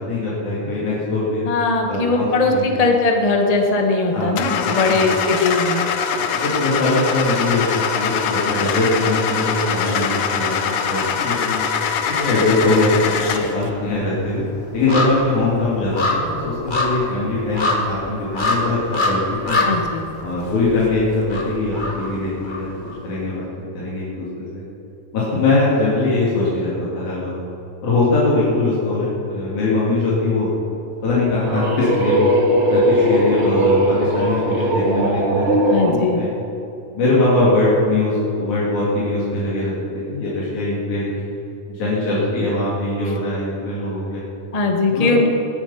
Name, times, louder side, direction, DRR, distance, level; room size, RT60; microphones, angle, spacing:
voice 1, 0.1-1.4 1.9-2.8 4.1-4.3 4.6-5.1 6.2-11.6 12.2-14.4 14.7-19.6 20.2-22.7 23.0-23.4 23.7-24.6 25.1-27.3 27.8-30.5 31.0-32.3 32.7-36.3 36.9-41.1 41.7-44.2 44.9-45.1, left 2 dB, 90° left, -8 dB, 4.2 m, -21 dB
voice 2, 1.4-5.9 19.6-20.0 35.7-36.2 44.5-45.3, left 3 dB, 40° left, 2 dB, 0.5 m, -19 dB
Car / Engine starting, 4.4-13.6, left 7 dB, 65° left, 1.7 m, -23 dB
sound 1, 12.0-12.7 13.0-23.0 23.3-23.4, left 2 dB, 25° left, 1.1 m, -25 dB
sound 2, 31.1-36.0, equal, 30° right, 1.7 m, -19 dB
20.5 x 10.5 x 5.8 m, 3.0 s
omnidirectional pair, 3.3 m